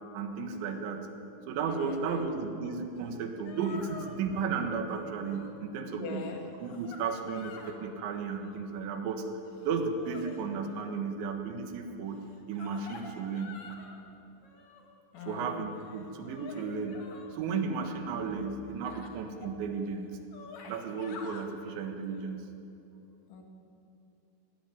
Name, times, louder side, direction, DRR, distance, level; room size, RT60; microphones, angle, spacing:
voice 1, 0.1-1.0 1.5-6.3 6.6-9.3 9.6-12.2 12.5-13.6 15.2-17.0 17.3-20.1 20.7-22.5, right 5 dB, 80° right, 5 dB, 3.8 m, -34 dB
voice 2, 1.7-2.2 5.8-6.4 15.1-15.5 23.3-23.4, left 6 dB, 85° left, 2 dB, 4.6 m, -41 dB
sound 1, 3.1-3.2 3.5-4.2 4.8-5.6 6.1-7.8 8.3-8.8 9.4-10.8 12.2-14.0 14.4-15.0 15.7-17.3 18.9-19.1 19.8-19.9 20.1-21.5 22.1-22.2, left 5 dB, 55° left, 1.7 m, -49 dB
19.0 x 16.0 x 9.2 m, 2.8 s
omnidirectional pair, 5.2 m